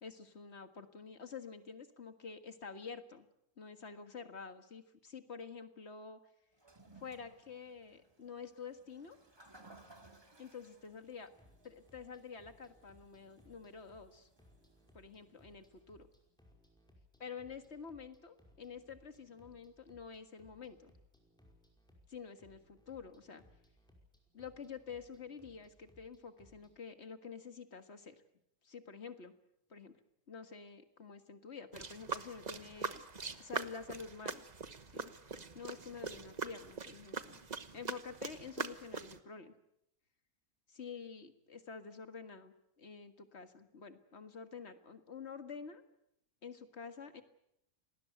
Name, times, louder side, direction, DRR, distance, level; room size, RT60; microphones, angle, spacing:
voice 1, 0.0-3.3 3.6-6.2 7.0-9.2 10.4-11.3 11.6-14.3 14.9-16.1 17.2-20.9 22.1-23.4 24.3-28.2 28.6-29.3 29.7-29.9 30.3-33.1 33.4-34.5 34.9-35.1 35.5-37.4 37.7-39.5 40.7-45.8 46.4-47.2, left 5 dB, 45° left, 8 dB, 2.0 m, -48 dB
Toilet flush, 6.5-15.8, right 2 dB, 15° right, 2.0 m, -63 dB
sound 1, 11.2-26.7, equal, 5° left, 5.2 m, -66 dB
sound 2, 31.7-39.2, right 4 dB, 30° right, 1.0 m, -43 dB
27.0 x 19.5 x 8.1 m, 0.79 s
omnidirectional pair, 1.6 m